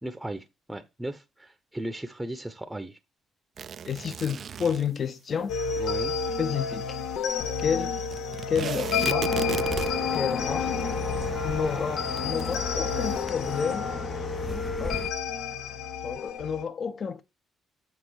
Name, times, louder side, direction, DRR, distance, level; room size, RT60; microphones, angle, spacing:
voice 1, 0.0-3.0 5.8-6.2, right 1 dB, 10° right, 0.8 m, -36 dB
sound 1, 3.6-5.0 8.1-10.2 10.8-10.9 11.1-11.2 12.2-12.6, right 7 dB, 55° right, 0.4 m, -35 dB
voice 2, 3.9-5.5 6.4-7.0 7.6-8.0 8.5-9.6 10.1-10.8 11.4-13.9 14.8-15.0 16.0-17.2, left 6 dB, 50° left, 1.0 m, -30 dB
sound 2, 5.5-16.6, left 5 dB, 80° left, 1.0 m, -30 dB
sound 3, 9.3-15.1, left 2 dB, 20° left, 0.6 m, -35 dB
7.6 x 3.7 x 6.4 m
cardioid pair, 90°, 0 cm